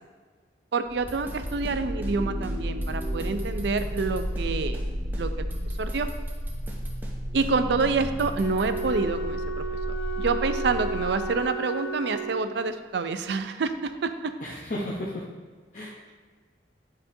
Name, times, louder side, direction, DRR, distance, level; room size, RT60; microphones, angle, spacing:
voice 1, 0.7-4.8 5.2-5.5 5.8-6.1 7.3-14.3, right 4 dB, 70° right, 9 dB, 0.4 m, -28 dB
sound 1, 0.8-11.5, equal, 25° right, 1.2 m, -32 dB
sound 2, 1.1-2.2 2.4-2.6 2.8-4.5 4.7-4.9 5.1-7.2 7.4-7.6 7.8-8.9, right 1 dB, 10° right, 0.6 m, -44 dB
Wind instrument woodwind instrument, 8.3-12.8, right 2 dB, 85° left, 0.6 m, -33 dB
voice 2, 14.4-15.2 15.7-16.2, left 1 dB, 45° left, -6 dB, 0.8 m, -34 dB
9.0 x 4.2 x 2.6 m, 1.5 s
head